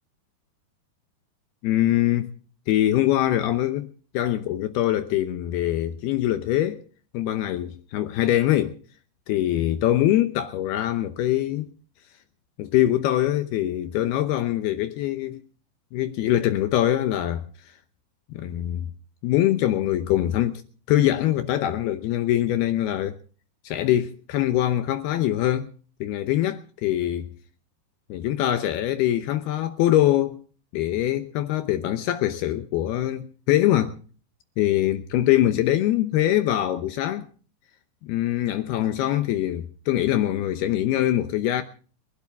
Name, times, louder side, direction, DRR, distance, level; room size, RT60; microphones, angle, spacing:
voice 1, 1.6-2.3 2.7-6.8 7.1-8.8 9.3-11.7 12.6-15.4 15.9-17.4 18.3-18.9 19.2-20.6 20.9-23.2 23.6-25.7 26.0-27.3 28.1-30.4 30.7-33.9 34.6-37.3 38.0-41.6, left 13 dB, 75° left, 2.6 m, -23 dB
29.5 x 12.0 x 3.5 m
omnidirectional pair, 5.1 m